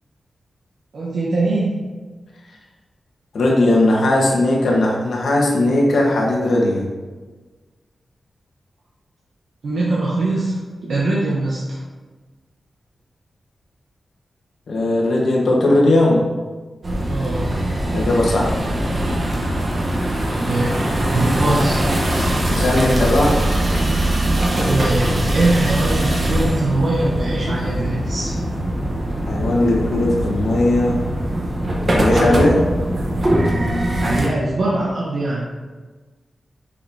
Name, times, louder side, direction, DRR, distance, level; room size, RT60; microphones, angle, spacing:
voice 1, 0.9-1.8 9.6-10.6 10.8-11.8 17.1-17.5 20.4-20.9 21.1-21.8 24.7-28.3 34.0-35.5, right 2 dB, 75° right, -6 dB, 1.0 m, -22 dB
voice 2, 3.3-6.9 14.7-16.3 17.9-18.6 22.5-23.4 29.3-31.0 31.8-32.6, left 1 dB, 85° left, -2 dB, 1.3 m, -17 dB
sound 1, 16.8-34.3, right 1 dB, 40° right, 1.1 m, -21 dB
6.7 x 5.2 x 2.8 m, 1.3 s
wide cardioid pair, 160°, 0 cm